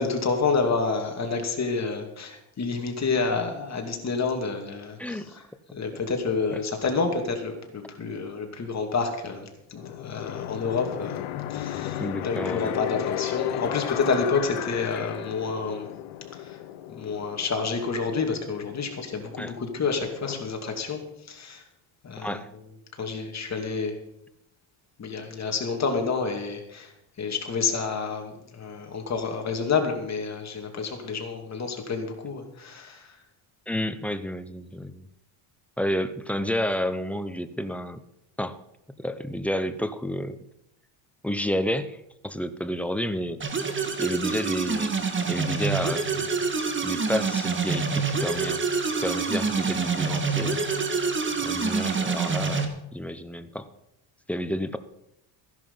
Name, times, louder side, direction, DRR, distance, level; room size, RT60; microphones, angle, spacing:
voice 1, 0.0-5.2 5.7-11.2 11.5-15.9 16.4-16.6 17.0-21.0 21.3-21.6 22.0-22.4 23.0-23.9 25.0-26.9 27.2-33.1, left 4 dB, 30° left, 3 dB, 2.6 m, -29 dB
voice 2, 5.0-5.3 6.5-6.6 12.0-12.7 19.4-19.5 22.2-22.5 33.7-35.1 35.8-38.0 38.4-38.6 39.0-40.5 41.2-43.4 44.0-44.9 45.3-46.3 46.8-50.6 51.4-53.7 54.3-54.8, equal, 5° left, 11 dB, 0.7 m, -30 dB
sound 1, 9.8-20.4, left 12 dB, 80° left, 1.2 m, -35 dB
sound 2, 43.4-52.6, right 4 dB, 25° right, 1.7 m, -26 dB
14.5 x 11.0 x 5.6 m, 0.83 s
cardioid pair, 125°, 49 cm